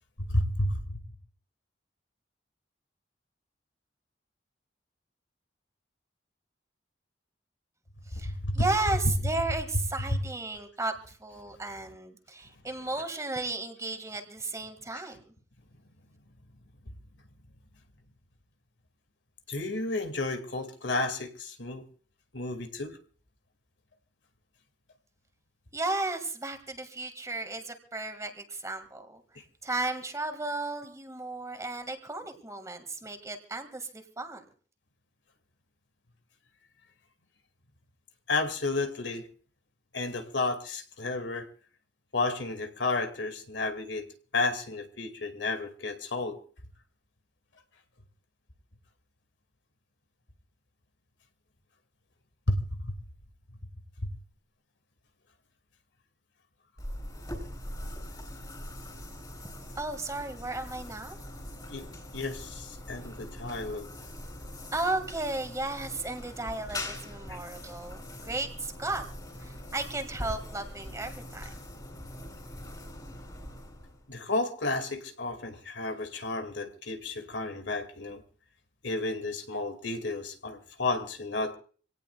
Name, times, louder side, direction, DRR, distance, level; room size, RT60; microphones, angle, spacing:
voice 1, 0.2-1.0 8.1-8.7 10.1-10.2 16.9-17.0 19.5-21.8 22.3-23.0 38.3-39.3 39.9-41.5 42.1-46.4 52.5-53.0 54.0-54.1 61.7-63.9 67.3-67.4 74.1-78.2 78.8-81.5, left 2 dB, 80° left, 7 dB, 2.1 m, -32 dB
voice 2, 8.1-15.2 25.7-29.2 29.6-34.4 59.8-61.2 64.7-69.0 69.4-71.6, right 2 dB, 20° right, 6 dB, 1.9 m, -34 dB
sound 1, 56.8-74.2, left 1 dB, 20° left, 3.6 m, -42 dB
26.0 x 17.5 x 2.3 m, 0.42 s
head